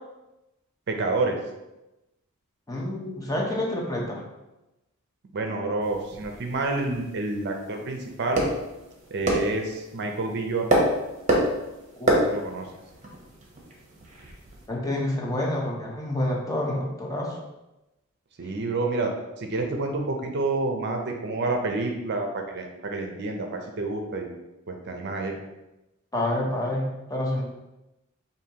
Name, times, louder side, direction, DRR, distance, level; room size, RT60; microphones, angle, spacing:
voice 1, 0.9-1.4 5.3-8.4 9.1-10.8 12.3-12.7 18.4-19.1 19.4-24.3 24.7-25.4, right 3 dB, 50° right, 3 dB, 0.5 m, -28 dB
voice 2, 2.7-4.2 12.0-12.1 14.7-17.4 26.1-27.4, left 1 dB, 15° left, -2 dB, 0.7 m, -28 dB
sound 1, 5.8-14.7, right 1 dB, 35° right, 0.9 m, -29 dB
5.1 x 2.7 x 2.8 m, 0.99 s
head